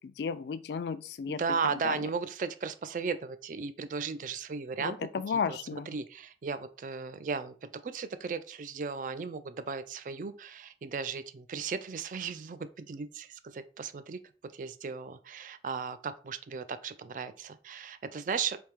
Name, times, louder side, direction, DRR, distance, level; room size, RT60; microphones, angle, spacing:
voice 1, 0.0-1.4 1.8-2.0 4.8-5.9, left 6 dB, 70° left, 0.3 m, -33 dB
voice 2, 1.4-5.0 5.3-5.6 5.9-18.6, right 5 dB, 45° right, 0.3 m, -36 dB
3.5 x 2.7 x 4.5 m
head